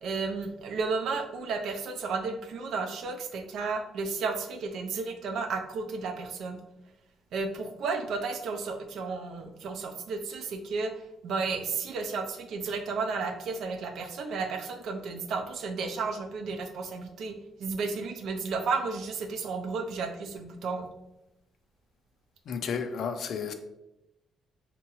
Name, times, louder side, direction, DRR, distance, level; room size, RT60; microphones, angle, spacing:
voice 1, 0.0-6.6 7.3-10.9 11.2-20.9, right 4 dB, 75° right, 5 dB, 0.5 m, -33 dB
voice 2, 22.5-23.5, left 6 dB, 70° left, 8 dB, 0.4 m, -32 dB
3.6 x 2.9 x 3.0 m, 0.91 s
cardioid pair, 90°, 0 cm